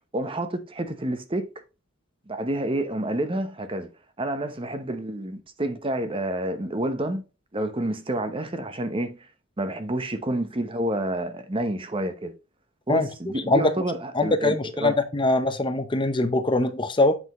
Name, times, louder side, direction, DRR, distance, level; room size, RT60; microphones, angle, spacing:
voice 1, 0.1-1.5 2.3-3.9 4.2-7.2 7.5-9.3 9.6-12.3 12.9-15.0, right 1 dB, 25° right, 0.8 m, -29 dB
voice 2, 14.1-17.1, left 2 dB, 25° left, 0.7 m, -22 dB
8.0 x 5.6 x 3.0 m
head